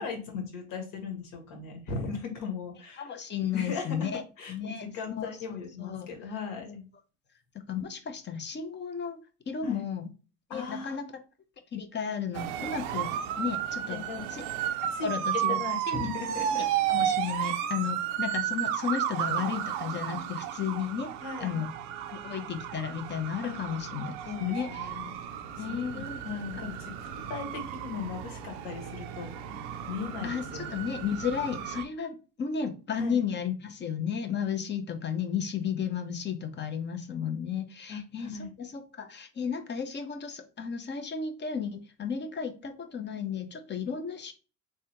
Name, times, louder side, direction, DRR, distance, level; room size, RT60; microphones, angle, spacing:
voice 1, 0.0-3.1 3.5-6.9 9.6-9.8 10.5-11.0 13.9-14.2 14.9-15.1 15.6-16.7 17.3-17.6 21.2-21.6 23.4-23.6 24.2-25.2 25.6-30.8 32.9-33.2 37.9-38.5, left 5 dB, 60° left, 3 dB, 1.6 m, -38 dB
voice 2, 3.0-4.2 4.5-4.9 5.2-5.3 5.8-6.1 7.7-10.1 10.5-11.1 11.7-13.1 13.4-14.0 14.3-14.4 15.0-15.6 15.9-16.0 16.5-21.1 21.4-21.7 22.1-24.1 24.4-24.9 25.6-26.2 26.6-26.7 30.2-38.3 38.6-44.3, left 7 dB, 30° left, 8 dB, 0.8 m, -33 dB
sound 1, 12.3-31.8, right 10 dB, 70° right, 0.6 m, -33 dB
3.4 x 3.4 x 2.9 m, 0.34 s
hypercardioid pair, 85°, 38 cm